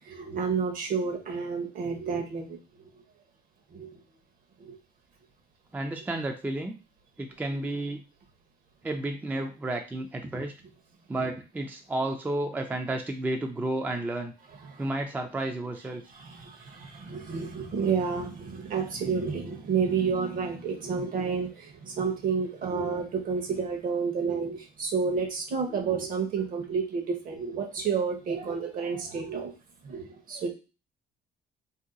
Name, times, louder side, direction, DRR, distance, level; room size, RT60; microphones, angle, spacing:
voice 1, 0.1-2.6 3.7-4.0 4.6-4.8 14.6-14.8 16.1-29.5 29.8-30.5, right 5 dB, 55° right, 4 dB, 1.0 m, -30 dB
voice 2, 5.7-6.8 7.2-8.0 8.8-10.5 11.1-14.3 14.8-16.0, right 2 dB, 10° right, 4 dB, 0.3 m, -31 dB
2.8 x 2.2 x 3.7 m, 0.33 s
cardioid pair, 110°, 17 cm